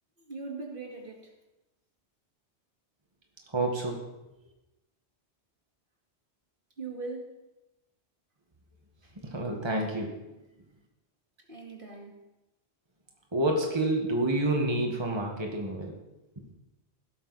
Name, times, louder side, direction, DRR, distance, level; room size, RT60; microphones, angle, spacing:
voice 1, 0.2-1.3 6.8-7.5 9.0-9.2 11.4-12.2, right 3 dB, 50° right, 0 dB, 2.4 m, -41 dB
voice 2, 3.5-4.0 9.2-10.1 13.3-16.0 16.4-16.5, right 1 dB, 25° right, 0 dB, 1.8 m, -28 dB
17.0 x 12.5 x 4.2 m, 0.99 s
omnidirectional pair, 1.1 m